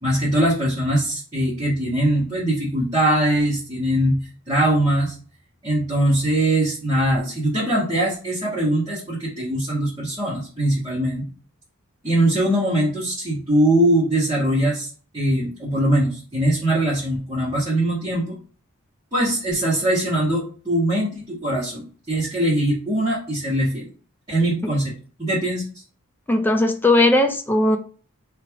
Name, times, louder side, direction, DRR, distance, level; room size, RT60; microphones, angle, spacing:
voice 1, 0.0-4.1 4.5-5.1 5.6-11.3 12.0-14.9 15.1-18.3 19.1-23.9 24.3-25.6, right 1 dB, 20° right, -9 dB, 1.6 m, -21 dB
voice 2, 26.3-27.8, left 2 dB, 10° left, 4 dB, 0.5 m, -18 dB
3.3 x 2.9 x 4.6 m, 0.39 s
head